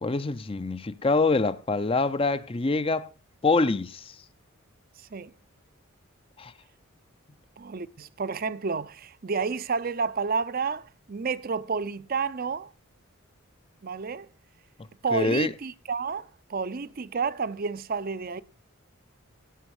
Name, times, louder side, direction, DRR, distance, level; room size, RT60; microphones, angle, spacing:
voice 1, 0.0-3.1 3.4-4.1 6.4-6.5 15.1-15.5, left 3 dB, 25° left, 0.5 m, -25 dB
voice 2, 7.6-12.7 13.8-14.3 15.0-18.4, right 5 dB, 40° right, 0.5 m, -30 dB
17.0 x 6.2 x 4.8 m
head